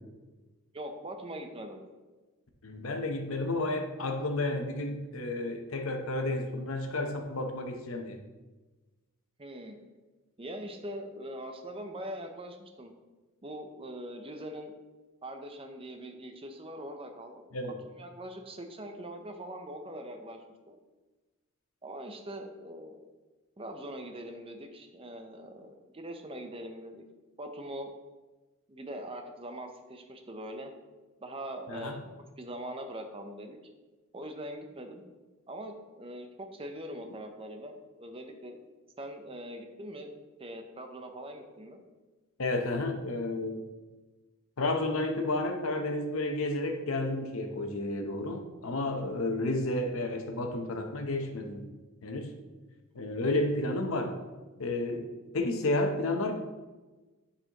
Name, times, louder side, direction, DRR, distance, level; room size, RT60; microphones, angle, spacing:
voice 1, 0.7-1.8 9.4-9.8 10.4-12.9 13.4-14.7 15.2-20.8 21.8-23.0 23.6-27.0 27.4-27.9 28.7-30.7 31.2-32.0 32.4-33.6 34.1-35.0 35.5-38.6 39.0-40.1 40.4-41.8 53.0-53.1, right 1 dB, 25° right, 5 dB, 0.6 m, -42 dB
voice 2, 2.6-8.2 17.5-17.8 31.7-31.9 42.4-43.6 44.6-51.7 52.0-52.3 52.9-54.1 54.6-55.1 55.3-56.3, left 2 dB, 75° left, 4 dB, 0.8 m, -31 dB
10.5 x 4.2 x 3.0 m, 1.2 s
head